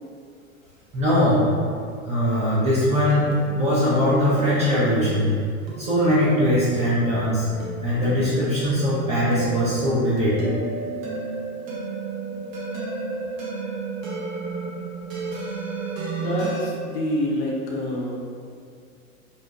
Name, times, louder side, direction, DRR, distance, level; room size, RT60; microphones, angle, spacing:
voice 1, 0.9-1.5 2.0-5.4 5.8-7.5 7.8-10.4, equal, 15° right, -10 dB, 0.3 m, -21 dB
sound 1, 3.1-16.6, right 4 dB, 65° right, 0.8 m, -33 dB
voice 2, 16.1-18.2, left 1 dB, 45° left, -2 dB, 0.6 m, -27 dB
2.7 x 2.1 x 2.2 m, 2.2 s
hypercardioid pair, 95°, 43 cm